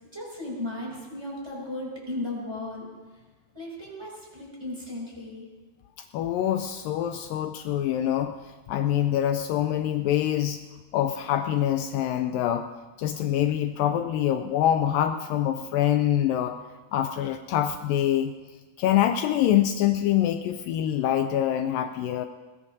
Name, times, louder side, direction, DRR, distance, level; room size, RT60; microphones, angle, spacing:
voice 1, 0.1-3.2 3.5-5.5, left 2 dB, 5° right, -4 dB, 5.5 m, -36 dB
voice 2, 6.1-8.3 8.7-10.6 10.9-12.7 13.0-16.6 16.9-18.3 18.8-22.3, left 11 dB, 80° left, 7 dB, 2.2 m, -25 dB
21.0 x 19.5 x 2.7 m, 1.2 s
omnidirectional pair, 4.1 m